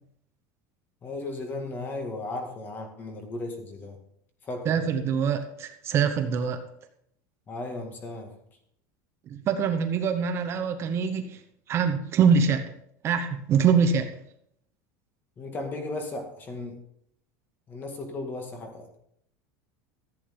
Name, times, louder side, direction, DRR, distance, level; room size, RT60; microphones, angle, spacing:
voice 1, 1.0-4.0 4.4-4.9 7.5-8.3 15.4-16.8 17.7-19.0, left 2 dB, 20° left, 4 dB, 2.0 m, -35 dB
voice 2, 4.6-6.6 9.3-11.4 11.7-12.7 13.0-14.1, right 6 dB, 30° right, 7 dB, 0.9 m, -24 dB
14.5 x 8.6 x 3.7 m, 0.71 s
supercardioid pair, 165°, 9 cm